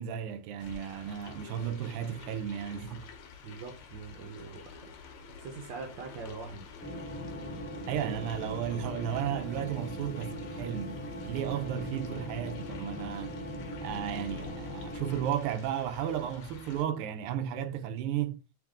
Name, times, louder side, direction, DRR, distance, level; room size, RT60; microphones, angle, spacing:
voice 1, 0.0-3.1 7.9-13.4 13.8-18.4, right 9 dB, 90° right, 1.5 m, -34 dB
sound 1, 0.6-16.9, left 6 dB, 80° left, 1.6 m, -49 dB
voice 2, 3.4-4.9 5.4-6.7, right 4 dB, 65° right, 1.3 m, -43 dB
sound 2, 6.8-15.3, equal, 10° left, 1.2 m, -40 dB
3.6 x 3.5 x 3.6 m
omnidirectional pair, 2.4 m